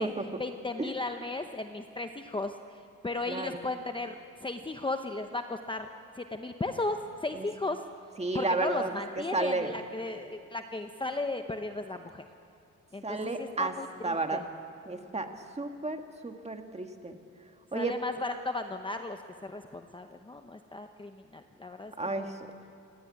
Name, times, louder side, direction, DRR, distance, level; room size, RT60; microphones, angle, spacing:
voice 1, 0.4-2.6 3.0-5.9 6.1-7.8 8.3-12.2 12.9-14.4 17.7-21.9 22.2-22.3, left 2 dB, 15° left, 6 dB, 0.8 m, -35 dB
voice 2, 3.3-3.6 7.3-7.5 8.2-8.9 9.3-9.7 13.0-13.7 14.0-14.4 14.9-15.3 15.6-17.2 17.7-17.9 22.0-22.4, right 2 dB, 20° right, 5 dB, 1.8 m, -32 dB
26.5 x 18.0 x 9.7 m, 2.6 s
wide cardioid pair, 145°, 32 cm